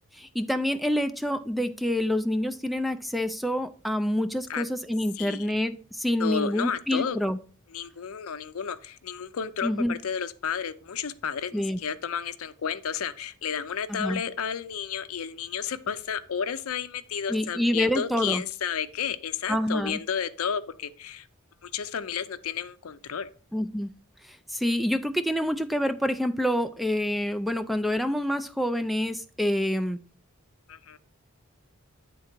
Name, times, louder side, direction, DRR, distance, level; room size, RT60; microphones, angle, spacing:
voice 1, 0.1-7.4 9.6-9.9 11.5-11.8 13.9-14.2 17.3-18.4 19.5-20.0 23.5-23.9 24.3-30.0, left 1 dB, ahead, 9 dB, 0.3 m, -27 dB
voice 2, 5.1-5.5 6.2-7.2 7.7-21.3 21.6-23.3 30.7-31.0, left 7 dB, 75° left, 12 dB, 0.5 m, -32 dB
9.1 x 3.7 x 4.4 m, 0.42 s
head